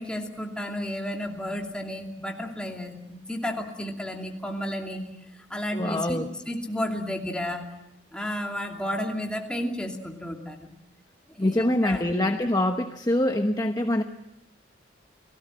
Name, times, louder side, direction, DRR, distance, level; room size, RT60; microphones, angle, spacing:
voice 1, 0.0-5.1 5.5-7.7 8.1-10.7 11.3-12.0, equal, 5° left, 1 dB, 2.7 m, -32 dB
voice 2, 5.7-6.3 11.4-14.0, left 1 dB, 20° left, 5 dB, 1.0 m, -24 dB
29.5 x 18.5 x 7.7 m, 0.93 s
head